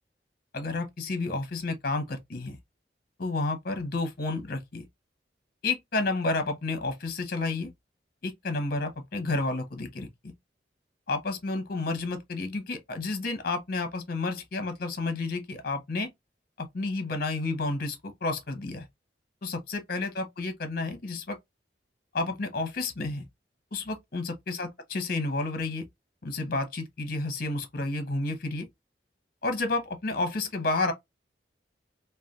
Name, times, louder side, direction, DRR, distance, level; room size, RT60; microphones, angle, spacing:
voice 1, 0.5-2.6 3.2-4.8 5.6-7.7 8.2-10.1 11.1-16.1 16.6-18.9 19.4-21.4 22.1-23.2 23.7-25.8 26.2-28.7 29.4-30.9, left 3 dB, 55° left, 0.8 m, -31 dB
3.2 x 2.2 x 2.4 m
head